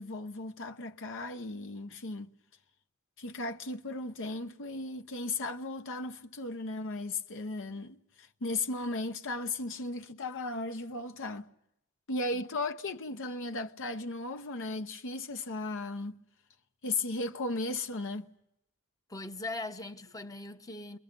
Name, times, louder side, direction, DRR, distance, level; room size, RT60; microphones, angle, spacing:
voice 1, 0.0-2.3 3.2-11.5 12.1-16.2 16.8-18.3, left 2 dB, 60° left, 0.9 m, -36 dB
voice 2, 19.1-21.0, left 2 dB, 15° left, 1.0 m, -40 dB
30.0 x 22.5 x 5.3 m
head